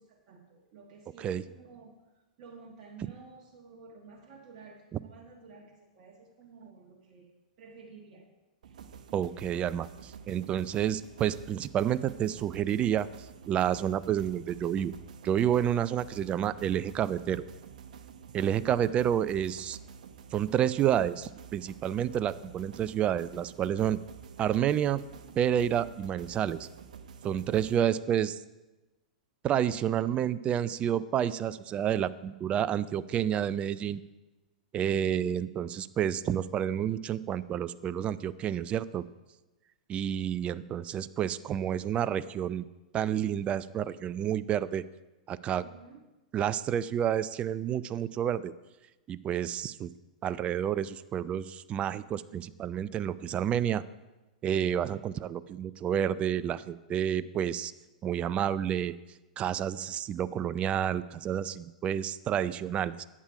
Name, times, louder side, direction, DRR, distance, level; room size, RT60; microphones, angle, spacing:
voice 1, 0.0-2.0 2.4-7.3 7.6-8.3 45.6-46.1, right 4 dB, 45° right, 0 dB, 1.5 m, -52 dB
sound 1, 8.6-27.8, right 7 dB, 65° right, 0.8 m, -49 dB
voice 2, 9.1-13.1 13.5-14.9 15.2-17.4 18.3-19.8 20.3-24.0 24.4-25.0 25.4-26.7 27.2-28.4 29.4-34.0 34.7-39.1 39.9-42.7 42.9-44.8 45.3-45.7 46.3-48.5 49.1-49.9 50.2-53.8 54.4-57.7 58.0-58.9 59.4-63.0, right 10 dB, 25° right, 16 dB, 0.4 m, -29 dB
11.0 x 8.9 x 4.9 m, 1.1 s
hypercardioid pair, 105°, 4 cm